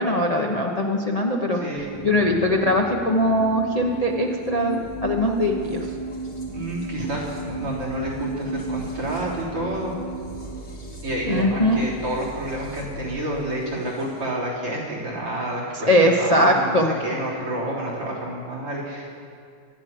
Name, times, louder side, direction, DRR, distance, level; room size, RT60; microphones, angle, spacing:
voice 1, 0.0-1.6 2.0-5.9 11.3-11.8 15.7-16.9, left 1 dB, 85° left, 0 dB, 0.3 m, -21 dB
voice 2, 1.5-1.9 4.7-4.8 6.5-10.0 11.0-16.8 17.0-19.1, right 1 dB, 85° right, -3 dB, 4.8 m, -29 dB
sound 1, 1.7-14.2, right 3 dB, 50° left, 2.9 m, -35 dB
sound 2, 4.8-13.9 16.0-16.3, right 1 dB, 40° right, 4.4 m, -42 dB
24.5 x 9.3 x 6.0 m, 2.3 s
omnidirectional pair, 2.4 m